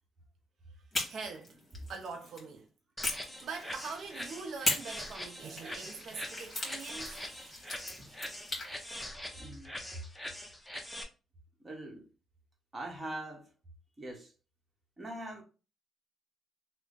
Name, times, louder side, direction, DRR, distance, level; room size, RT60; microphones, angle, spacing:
sound 1, 0.9-2.5 3.0-4.0 4.6-8.7, left 2 dB, 30° left, 1.6 m, -38 dB
voice 1, 1.0-1.6 1.9-2.7 3.1-9.1, right 4 dB, 65° right, 0.5 m, -44 dB
sound 2, 3.0-11.0, left 1 dB, 5° left, 0.7 m, -43 dB
voice 2, 9.3-9.8 11.6-12.0 12.7-13.5 14.0-14.3 15.0-15.4, right 1 dB, 25° right, 1.1 m, -42 dB
3.2 x 2.1 x 3.9 m
cardioid pair, 90°, 0 cm